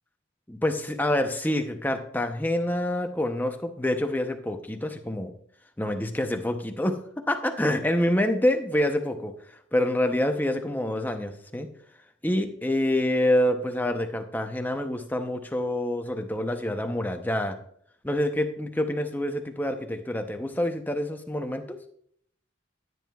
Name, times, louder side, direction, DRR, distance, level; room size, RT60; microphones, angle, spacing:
voice 1, 0.5-5.3 5.8-7.0 7.3-9.3 9.7-11.7 12.2-17.6 18.0-21.8, left 1 dB, 10° left, 5 dB, 0.7 m, -27 dB
15.5 x 9.4 x 2.3 m, 0.65 s
head